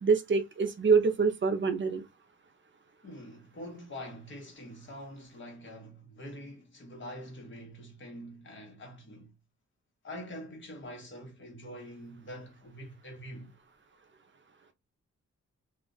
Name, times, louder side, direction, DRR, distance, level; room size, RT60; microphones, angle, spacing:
voice 1, 0.0-2.0, right 5 dB, 40° right, 0.6 m, -25 dB
voice 2, 3.0-9.3 10.0-13.5, equal, 40° left, 1.1 m, -45 dB
2.4 x 2.3 x 3.8 m
wide cardioid pair, 125°, 29 cm